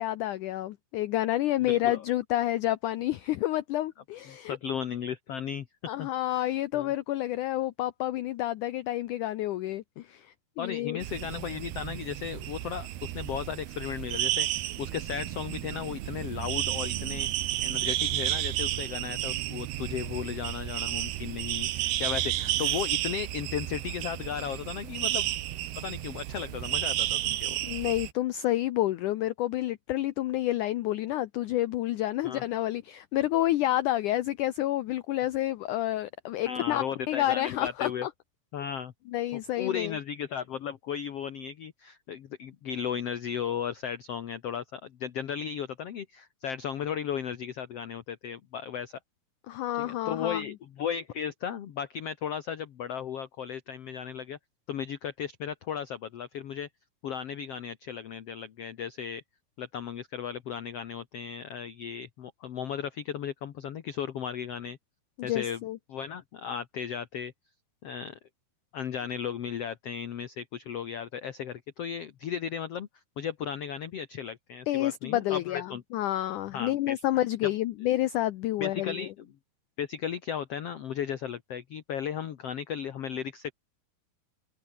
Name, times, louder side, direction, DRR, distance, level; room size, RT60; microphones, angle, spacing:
voice 1, 0.0-4.6 5.9-11.0 27.6-38.1 39.1-40.0 49.5-50.4 65.2-65.8 74.7-79.1, left 14 dB, 80° left, 1.8 m, -29 dB
voice 2, 1.7-2.0 4.3-5.7 6.0-6.4 6.7-6.9 10.6-17.3 17.6-25.3 25.7-27.6 32.2-32.4 36.5-38.1 38.5-38.9 39.3-49.0 49.8-54.4 54.7-56.7 57.0-59.2 59.6-64.8 65.2-65.6 65.9-67.3 67.8-68.2 68.7-72.9 73.2-75.8 76.5-77.0 77.4-77.5 78.6-79.3 79.8-83.5, left 8 dB, 65° left, 1.6 m, -35 dB
sound 1, 11.0-28.1, right 14 dB, 85° right, 3.4 m, -32 dB
omnidirectional pair, 4.6 m